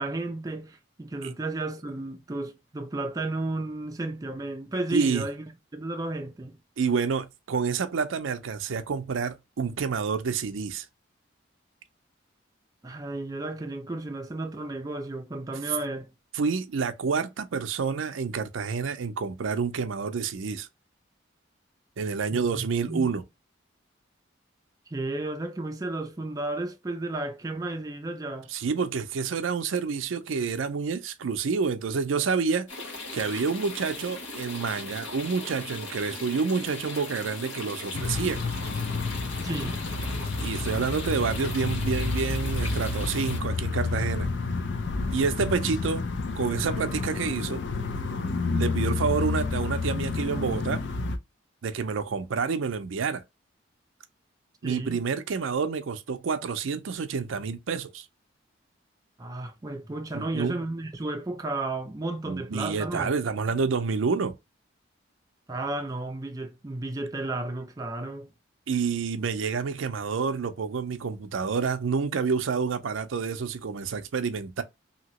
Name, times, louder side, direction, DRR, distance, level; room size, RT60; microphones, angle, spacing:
voice 1, 0.0-5.4 5.7-6.6 12.8-16.1 22.3-23.1 24.9-28.5 39.4-39.8 54.6-55.0 59.2-63.1 65.5-68.3, right 2 dB, 20° right, 0.4 m, -33 dB
voice 2, 4.9-5.3 6.8-10.9 16.3-20.7 22.0-23.2 28.5-32.7 33.1-38.4 40.4-44.3 45.1-46.0 46.3-47.6 48.5-50.8 51.6-53.2 54.6-58.1 60.1-60.6 62.3-64.4 68.7-74.6, right 5 dB, 85° right, 0.5 m, -28 dB
sound 1, 32.7-43.4, left 2 dB, 90° left, 1.4 m, -38 dB
sound 2, 37.9-51.2, left 3 dB, 65° left, 0.5 m, -30 dB
2.9 x 2.8 x 2.8 m
head